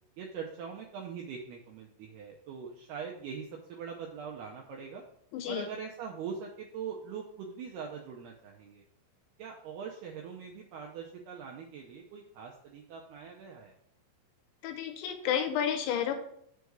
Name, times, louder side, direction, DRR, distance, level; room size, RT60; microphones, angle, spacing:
voice 1, 0.2-5.0 5.5-8.8 9.4-13.7, right 6 dB, 85° right, -1 dB, 2.3 m, -42 dB
voice 2, 5.3-5.6 14.6-16.1, left 9 dB, 85° left, 6 dB, 3.0 m, -31 dB
6.8 x 4.7 x 6.2 m, 0.71 s
omnidirectional pair, 5.6 m